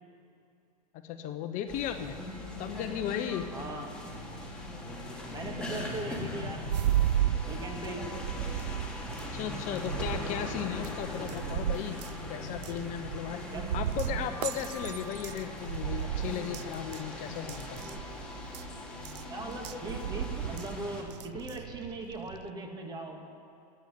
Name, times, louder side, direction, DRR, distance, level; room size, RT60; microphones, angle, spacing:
voice 1, 1.0-2.2 2.6-3.5 9.3-12.0 12.3-13.4 13.7-17.8, left 10 dB, 40° left, 8 dB, 0.8 m, -36 dB
sound 1, 1.7-21.0, left 1 dB, 5° left, 2.4 m, -40 dB
voice 2, 3.5-4.0 5.3-6.7 7.5-8.1 13.5-13.7 19.3-23.3, right 2 dB, 20° right, 3 dB, 1.9 m, -39 dB
sound 2, 6.6-22.5, right 12 dB, 85° right, 0.4 m, -35 dB
13.5 x 8.1 x 8.3 m, 2.6 s
hypercardioid pair, 125°, 20 cm